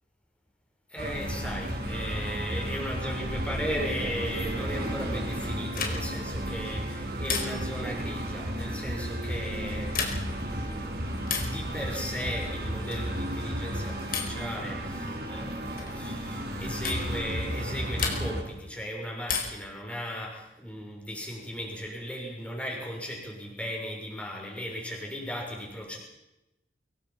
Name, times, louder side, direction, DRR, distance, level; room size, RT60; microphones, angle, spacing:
voice 1, 0.9-26.0, equal, 5° left, -1 dB, 6.7 m, -37 dB
sound 1, 1.0-18.4, equal, 55° right, 4.9 m, -33 dB
sound 2, 5.8-6.3 7.3-7.9 9.8-10.4 11.2-11.6 12.9-13.2 14.1-14.5 15.8-16.0 16.8-17.1 18.0-18.5 19.3-19.7 21.2-21.9, left 5 dB, 50° left, 4.6 m, -33 dB
24.0 x 22.5 x 6.0 m, 0.95 s
head